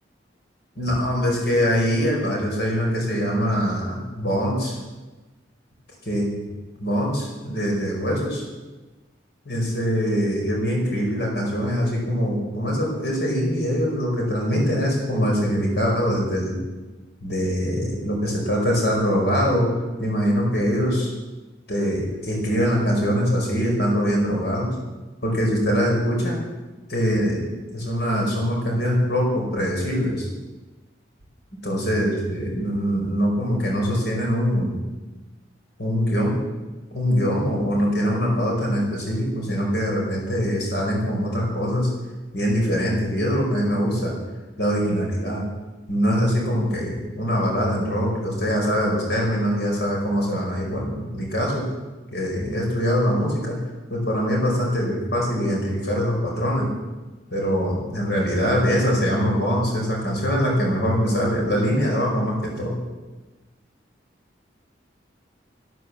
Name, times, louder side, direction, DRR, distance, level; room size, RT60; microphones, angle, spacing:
voice 1, 0.8-4.8 6.1-6.4 6.8-8.4 9.5-16.6 17.2-19.7 20.0-21.1 21.7-24.7 25.2-26.4 26.9-30.3 31.6-34.8 35.8-36.4 36.9-41.9 42.3-44.1 44.6-45.4 45.9-51.7 52.1-53.6 53.9-56.7 57.3-62.8, equal, 60° left, -1 dB, 5.1 m, -23 dB
14.5 x 13.5 x 7.3 m, 1.2 s
head